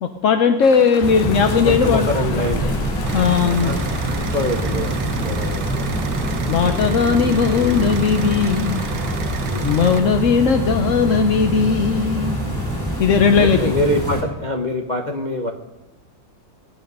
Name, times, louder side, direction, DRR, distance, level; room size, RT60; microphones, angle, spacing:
voice 1, 0.0-2.1 3.1-3.7 6.5-8.9 9.6-12.4 13.0-13.7, left 6 dB, 60° left, 6 dB, 0.8 m, -17 dB
sound 1, 0.6-5.7, left 9 dB, 80° left, 1.6 m, -37 dB
sound 2, 1.0-14.2, right 1 dB, 10° left, 3.3 m, -24 dB
voice 2, 1.6-2.7 3.4-3.8 4.3-6.0 9.4-9.8 12.5-12.7 13.4-15.5, left 1 dB, 30° left, 2 dB, 0.9 m, -25 dB
sound 3, 3.1-10.0, right 6 dB, 65° right, 1.6 m, -32 dB
23.5 x 9.1 x 5.4 m, 1.0 s
omnidirectional pair, 2.2 m